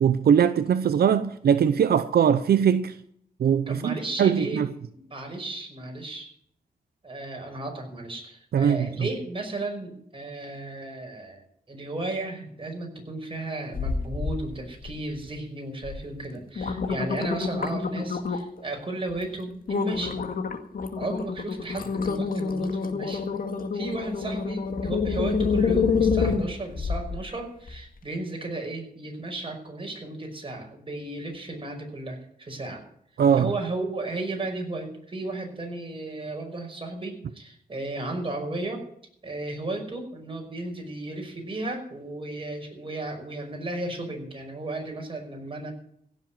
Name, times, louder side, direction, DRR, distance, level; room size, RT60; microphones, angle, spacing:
voice 1, 0.0-3.0 3.4-4.7 8.5-9.1 33.2-33.5, right 8 dB, 90° right, 0.7 m, -21 dB
voice 2, 3.7-4.6 4.9-6.3 7.0-11.4 11.7-20.2 21.0-23.3 23.7-32.8 33.4-38.9 39.2-45.7, right 2 dB, 35° right, 5.7 m, -34 dB
sound 1, 13.7-14.4 14.8-15.3 15.8-16.0 16.4-18.6 19.1-19.3 19.7-27.2 27.7-27.8, left 5 dB, 65° left, 2.0 m, -27 dB
16.0 x 7.4 x 9.2 m
wide cardioid pair, 85°, 16 cm